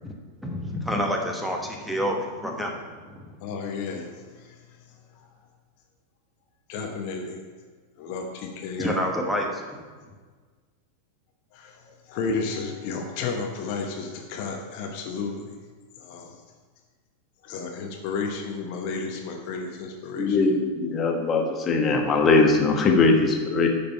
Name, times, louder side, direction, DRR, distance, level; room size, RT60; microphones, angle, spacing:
voice 1, 0.4-2.7 3.0-3.2 8.8-9.6, equal, ahead, 0 dB, 1.2 m, -28 dB
voice 2, 3.4-4.6 6.7-7.4 8.0-8.9 11.5-15.5 16.0-16.4 17.4-20.6, left 4 dB, 45° left, 3 dB, 1.0 m, -32 dB
voice 3, 20.2-23.7, left 3 dB, 25° left, 3 dB, 1.3 m, -21 dB
10.5 x 5.3 x 5.4 m, 1.5 s
figure-of-eight pair, 90°, 0 cm